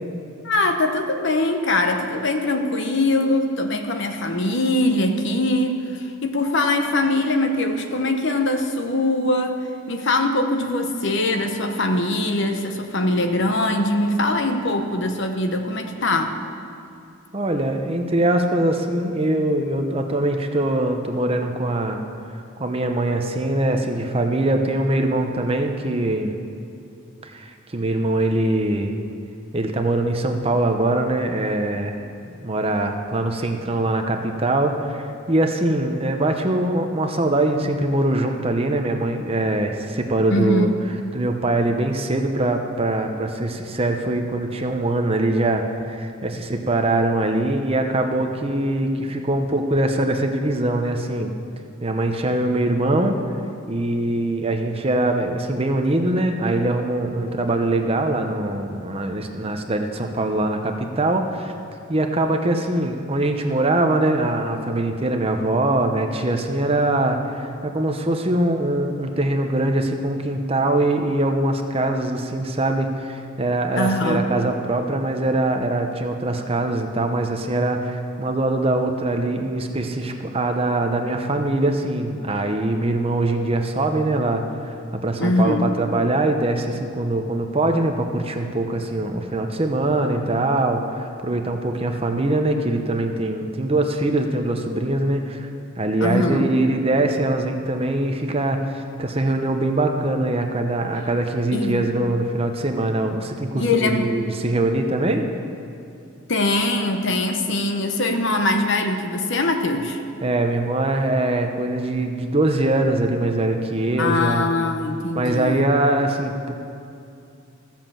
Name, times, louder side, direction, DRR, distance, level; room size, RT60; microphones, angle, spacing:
voice 1, 0.4-9.6 9.9-16.4 40.3-40.7 73.8-74.3 85.2-85.7 96.0-96.5 101.5-101.9 103.5-104.1 106.3-110.0 114.0-115.6, left 2 dB, 60° left, 5 dB, 1.0 m, -22 dB
voice 2, 17.3-22.0 22.6-26.3 27.2-28.9 29.5-40.7 41.1-51.3 51.8-53.2 53.7-61.5 61.9-95.5 95.8-105.2 110.2-114.5 115.1-116.5, right 2 dB, 30° right, 5 dB, 0.8 m, -22 dB
14.0 x 7.4 x 7.4 m, 2.5 s
head